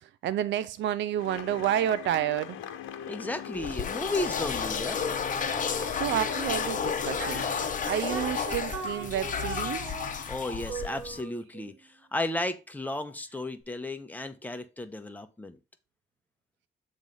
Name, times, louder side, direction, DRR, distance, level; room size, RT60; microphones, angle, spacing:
voice 1, 0.0-2.6 6.0-7.4 7.8-9.9, right 11 dB, 65° right, 0.5 m, -30 dB
sound 1, 1.2-8.0, left 9 dB, 90° left, 1.0 m, -41 dB
voice 2, 3.1-5.0 10.3-15.6, left 2 dB, 10° left, 0.9 m, -34 dB
sound 2, 3.6-11.2, left 6 dB, 40° left, 0.9 m, -32 dB
sound 3, 7.2-10.4 10.7-11.8, right 3 dB, 85° right, 1.6 m, -39 dB
7.2 x 3.2 x 5.3 m
cardioid pair, 90°, 20 cm